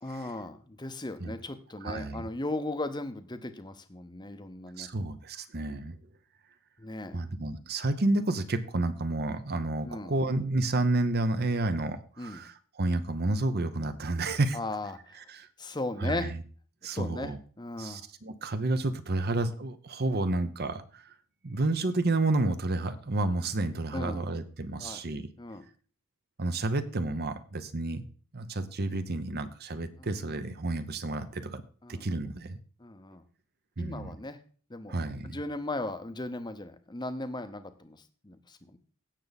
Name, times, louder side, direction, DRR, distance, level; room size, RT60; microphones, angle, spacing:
voice 1, 0.0-4.9 6.8-7.2 9.8-10.1 12.2-12.4 14.5-15.2 15.6-16.3 16.9-18.0 23.9-24.2 24.8-25.0 25.4-25.6 31.8-32.0 32.8-33.2 33.8-34.4 34.7-34.9 35.2-38.0 38.2-38.8, left 2 dB, 20° left, 10 dB, 0.8 m, -37 dB
voice 2, 1.8-2.3 4.8-6.0 7.1-14.6 15.1-15.5 16.0-16.4 16.8-17.4 17.8-21.1 21.4-25.3 26.4-28.0 28.3-31.6 31.9-32.6 33.8-34.2 34.9-35.4, right 2 dB, 45° right, 11 dB, 0.9 m, -30 dB
16.5 x 6.7 x 4.1 m, 0.42 s
head